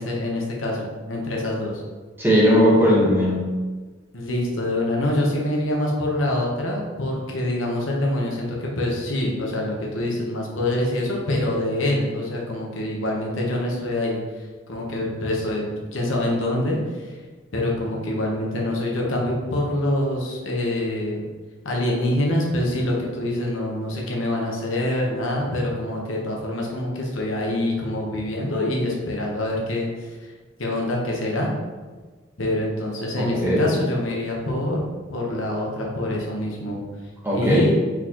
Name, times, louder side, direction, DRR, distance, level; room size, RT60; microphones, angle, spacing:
voice 1, 0.0-1.8 4.1-17.2 17.5-21.2 21.6-30.3 30.6-31.5 32.4-36.8 37.3-37.7, left 1 dB, 75° left, -2 dB, 1.0 m, -25 dB
voice 2, 2.2-3.4 33.2-33.6 37.2-37.7, equal, 10° right, -6 dB, 1.1 m, -18 dB
4.5 x 4.0 x 2.9 m, 1.4 s
head